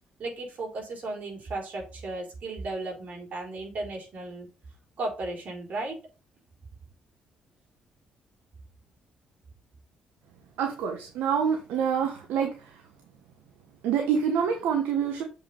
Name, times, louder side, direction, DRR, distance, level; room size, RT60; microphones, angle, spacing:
voice 1, 0.2-4.5 5.0-6.0, right 2 dB, 55° right, 0 dB, 4.8 m, -35 dB
voice 2, 10.6-12.5 13.8-15.2, right 7 dB, 75° right, 4 dB, 1.3 m, -26 dB
7.2 x 5.7 x 5.5 m, 0.31 s
hypercardioid pair, 50°, 3 cm